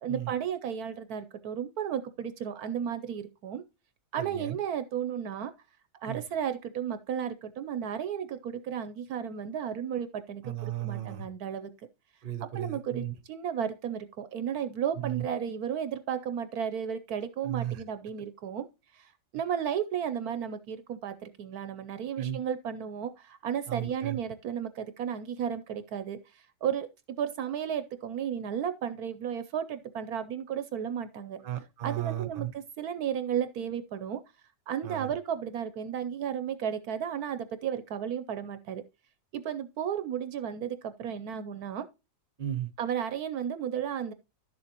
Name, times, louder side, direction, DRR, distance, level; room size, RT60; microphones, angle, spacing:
voice 1, 0.0-3.6 4.1-5.5 6.0-11.7 12.5-18.7 18.9-26.9 27.2-31.4 31.8-34.2 34.7-38.8 39.3-41.9 42.8-44.1, right 8 dB, 70° right, 1.1 m, -33 dB
voice 2, 4.2-4.6 6.1-6.2 10.4-11.3 12.2-13.1 15.0-15.2 17.4-17.8 22.2-22.4 23.7-24.2 31.4-32.5 34.8-35.1 42.4-42.7, right 12 dB, 40° right, 0.9 m, -35 dB
11.5 x 7.0 x 2.9 m
omnidirectional pair, 1.8 m